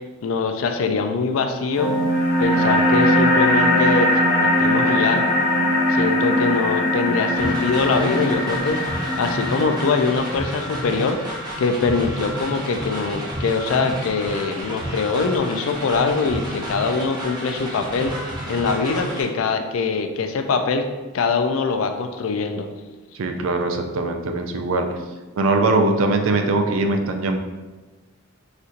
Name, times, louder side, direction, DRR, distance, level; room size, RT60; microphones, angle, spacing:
voice 1, 0.2-1.9 2.4-4.1 4.4-5.3 5.9-11.2 11.6-18.1 18.5-20.9 21.1-22.7, left 4 dB, 75° left, 7 dB, 0.4 m, -23 dB
sound 1, 1.8-10.8, left 1 dB, 40° left, 0.6 m, -20 dB
sound 2, 7.4-19.2, right 1 dB, 20° right, 0.6 m, -31 dB
voice 2, 23.2-24.9 25.4-27.4, right 2 dB, 70° right, 5 dB, 0.4 m, -21 dB
4.3 x 2.6 x 2.4 m, 1.2 s
head